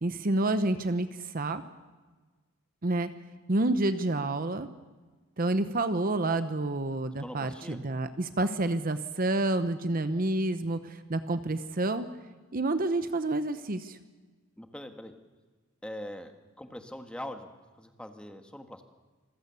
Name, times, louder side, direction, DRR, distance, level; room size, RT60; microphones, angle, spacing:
voice 1, 0.0-1.6 2.8-3.1 3.5-4.7 5.4-12.1 12.5-14.0, right 2 dB, 45° right, 11 dB, 0.9 m, -29 dB
voice 2, 7.2-7.8 14.6-15.1 15.8-16.3 16.6-18.8, left 1 dB, 5° left, 6 dB, 1.5 m, -42 dB
26.5 x 15.0 x 7.0 m, 1.3 s
head